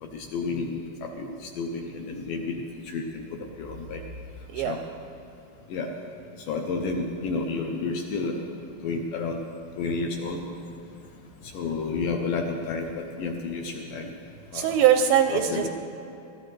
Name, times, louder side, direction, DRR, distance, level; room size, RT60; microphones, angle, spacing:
voice 1, 0.0-4.0 4.6-4.8 5.7-5.9 6.5-8.5 8.8-9.4 9.8-10.5 11.4-14.2 14.5-14.8 15.3-15.7, left 4 dB, 75° left, 2 dB, 2.1 m, -31 dB
voice 2, 14.5-15.7, right 9 dB, 80° right, 6 dB, 2.2 m, -21 dB
20.0 x 13.5 x 3.3 m, 2.7 s
omnidirectional pair, 4.6 m